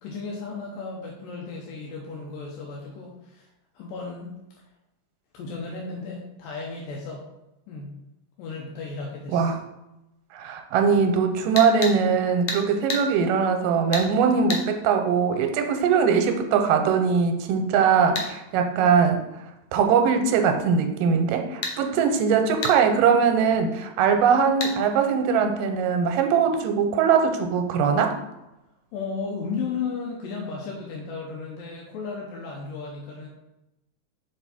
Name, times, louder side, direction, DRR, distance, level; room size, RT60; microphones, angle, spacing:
voice 1, 0.0-3.5 3.7-4.3 5.3-7.2 7.7-8.0 8.4-9.5 28.9-33.3, left 4 dB, 85° left, -2 dB, 2.5 m, -34 dB
voice 2, 10.3-19.2 19.7-28.2, right 6 dB, 90° right, 5 dB, 2.3 m, -21 dB
sound 1, 11.6-12.0 12.5-12.6 12.9-13.1 13.9-14.1 14.5-14.7 18.2-18.3 21.6-21.8 22.6-22.8 24.6-24.8, left 3 dB, 70° left, 1.3 m, -29 dB
5.8 x 4.5 x 4.1 m, 0.92 s
omnidirectional pair, 3.9 m